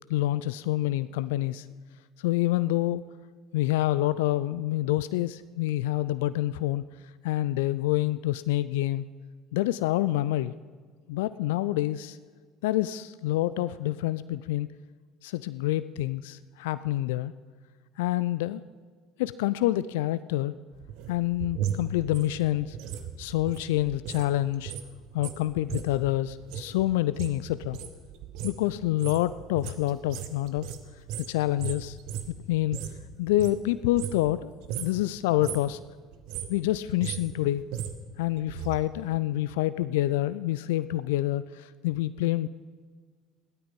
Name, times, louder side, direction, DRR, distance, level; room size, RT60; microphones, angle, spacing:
voice 1, 0.1-1.7 2.2-3.0 3.5-6.8 7.2-9.1 9.5-10.6 11.1-12.2 12.6-14.7 15.2-17.3 18.0-18.6 19.2-20.5 21.1-22.8 23.2-24.7 25.1-27.8 28.4-30.7 31.2-32.0 32.3-32.8 33.2-34.5 34.8-35.8 36.5-37.6 38.2-42.5, left 15 dB, 70° left, 16 dB, 0.3 m, -27 dB
sound 1, 20.7-24.3 24.5-33.0 33.3-34.4 34.6-35.0 35.3-35.8 36.1-38.8 39.1-39.2, right 9 dB, 60° right, 1.1 m, -37 dB
15.5 x 12.5 x 5.4 m, 1.5 s
figure-of-eight pair, 60°, 0 cm